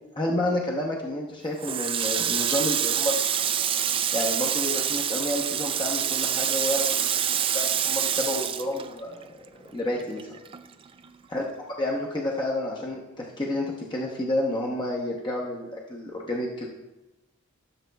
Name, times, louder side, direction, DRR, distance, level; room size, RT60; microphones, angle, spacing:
voice 1, 0.1-3.2 4.1-9.3 9.7-10.4 11.3-11.4 11.8-16.7, left 1 dB, 20° left, -2 dB, 0.8 m, -30 dB
Water tap faucet, 1.6-9.5 9.8-11.1, right 9 dB, 25° right, 0.3 m, -26 dB
14.0 x 7.2 x 2.3 m, 1.0 s
head